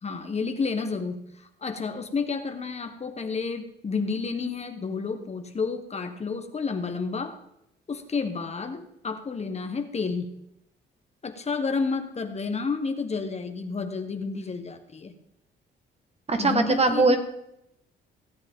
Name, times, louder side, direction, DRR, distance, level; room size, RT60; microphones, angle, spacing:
voice 1, 0.0-1.2 1.6-7.4 7.9-10.3 11.2-15.1 16.4-17.2, left 4 dB, 35° left, 7 dB, 1.1 m, -30 dB
voice 2, 16.3-17.2, right 3 dB, 30° right, 6 dB, 1.5 m, -21 dB
16.5 x 8.2 x 3.7 m, 0.81 s
cardioid pair, 90°, 20 cm